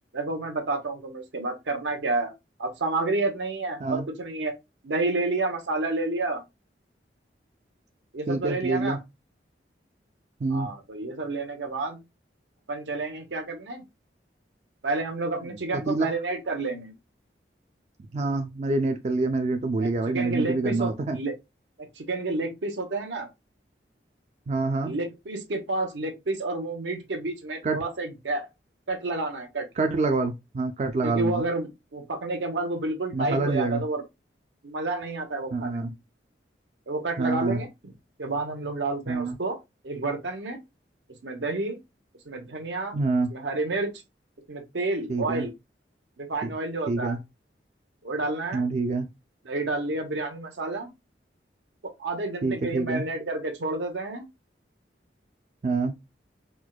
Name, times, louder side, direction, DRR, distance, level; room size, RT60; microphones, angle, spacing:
voice 1, 0.1-2.3 2.6-4.5 4.8-6.4 8.1-9.0 10.5-12.0 12.7-13.8 14.8-16.9 19.8-21.3 22.0-23.3 24.8-28.5 28.9-29.7 31.0-34.0 34.6-36.0 36.9-37.9 38.2-39.6 39.8-40.6 41.2-41.8 42.3-42.9 43.3-43.9 44.5-45.5 46.2-47.2 48.0-48.6 49.4-50.9 52.0-54.2, right 2 dB, 90° right, 0.9 m, -30 dB
voice 2, 8.3-9.0 10.4-10.7 15.7-16.1 18.1-21.2 24.5-24.9 27.6-27.8 29.8-31.4 33.1-33.8 35.5-35.9 37.2-37.6 39.1-39.4 42.9-43.3 45.1-45.5 46.4-46.5 46.9-47.2 48.5-49.1 52.4-53.0 55.6-55.9, right 3 dB, 40° right, 0.3 m, -26 dB
4.4 x 2.2 x 2.3 m
head